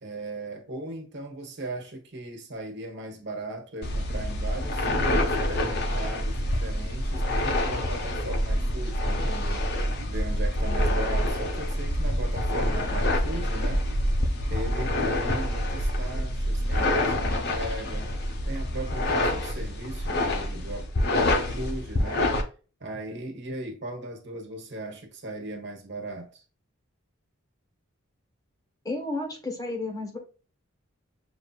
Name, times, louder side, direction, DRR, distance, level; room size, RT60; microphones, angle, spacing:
voice 1, 0.0-4.9 5.3-9.7 10.1-13.9 14.5-18.1 18.5-22.3 22.8-26.4, right 1 dB, 55° right, 1.2 m, -38 dB
sound 1, 3.8-22.4, left 1 dB, 50° left, 0.8 m, -26 dB
voice 2, 28.8-30.2, left 2 dB, 15° left, 1.0 m, -32 dB
6.8 x 2.7 x 2.3 m
head